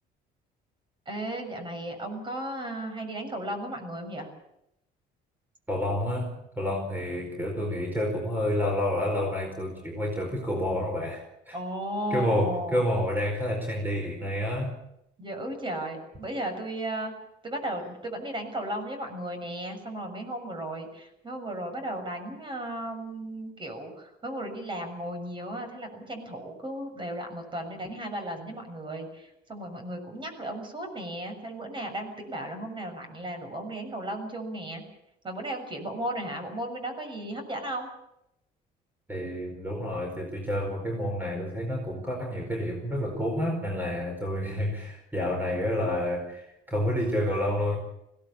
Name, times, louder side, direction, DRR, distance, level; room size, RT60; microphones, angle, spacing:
voice 1, 1.0-4.3 11.5-12.8 15.2-17.1 17.4-34.8 35.2-37.9, right 1 dB, 30° right, 6 dB, 6.9 m, -35 dB
voice 2, 5.7-11.6 12.1-14.8 39.1-47.8, left 1 dB, 10° right, 1 dB, 4.8 m, -29 dB
21.5 x 17.5 x 8.6 m, 0.81 s
cardioid pair, 110°, 17 cm